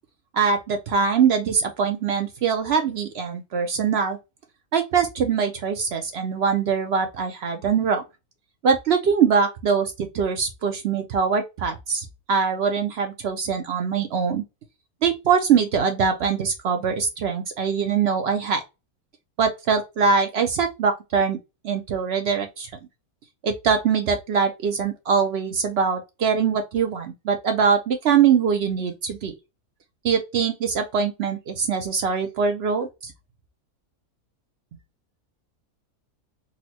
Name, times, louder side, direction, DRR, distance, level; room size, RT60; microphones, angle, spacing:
voice 1, 0.3-4.2 4.7-8.0 8.6-14.4 15.0-18.6 19.4-21.4 21.6-22.7 23.4-29.3 30.0-33.1, right 6 dB, 65° right, 0.6 m, -23 dB
4.0 x 2.0 x 2.8 m
omnidirectional pair, 1.6 m